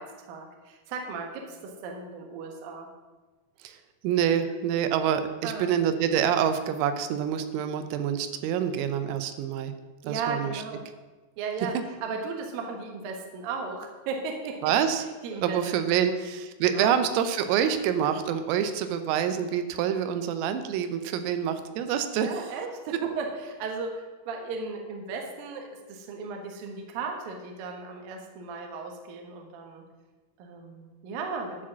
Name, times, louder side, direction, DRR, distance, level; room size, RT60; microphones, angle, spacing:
voice 1, 0.0-2.9 5.4-5.7 10.0-10.8 11.4-14.7 15.2-16.2 16.7-16.9 22.1-29.8 30.4-31.6, right 4 dB, 70° right, 3 dB, 2.2 m, -36 dB
voice 2, 4.0-9.7 10.1-10.6 14.6-15.0 15.4-22.3, right 9 dB, 85° right, 9 dB, 3.4 m, -26 dB
11.5 x 5.0 x 7.3 m, 1.2 s
omnidirectional pair, 6.0 m